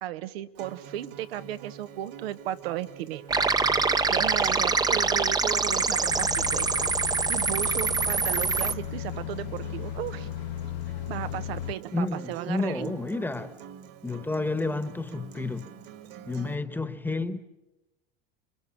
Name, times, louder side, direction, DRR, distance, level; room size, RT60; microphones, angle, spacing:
voice 1, 0.0-3.5 4.1-6.9 7.3-10.3 11.1-12.9, right 12 dB, 80° right, 1.1 m, -35 dB
Acoustic guitar, 0.5-16.6, right 9 dB, 50° right, 2.1 m, -46 dB
sound 1, 3.3-8.7, right 4 dB, 15° right, 0.8 m, -25 dB
sound 2, 6.1-11.7, left 12 dB, 55° left, 1.1 m, -36 dB
voice 2, 11.9-13.5 14.0-15.7 16.3-17.4, left 2 dB, 5° left, 1.3 m, -30 dB
27.5 x 22.5 x 7.3 m
supercardioid pair, 115°, 30 cm